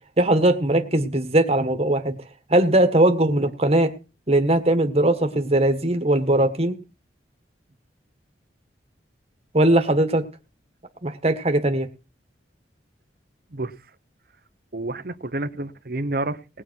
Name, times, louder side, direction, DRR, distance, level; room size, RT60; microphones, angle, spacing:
voice 1, 0.2-2.1 2.5-3.9 4.3-6.8 9.5-10.2 11.0-11.9, right 1 dB, 35° right, 7 dB, 1.6 m, -20 dB
voice 2, 14.7-16.6, right 2 dB, 55° right, 11 dB, 1.0 m, -29 dB
19.5 x 8.6 x 4.7 m, 0.33 s
head